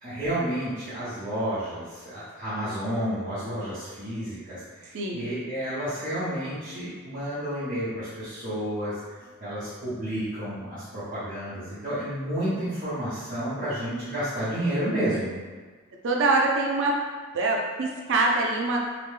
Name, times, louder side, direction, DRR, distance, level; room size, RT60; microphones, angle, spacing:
voice 1, 0.0-9.0 9.4-15.3, right 1 dB, 40° right, -14 dB, 0.9 m, -31 dB
voice 2, 4.9-5.2 15.1-15.3 16.0-16.9 17.3-18.8, right 3 dB, 60° right, -1 dB, 0.4 m, -24 dB
2.9 x 2.1 x 3.3 m, 1.5 s
head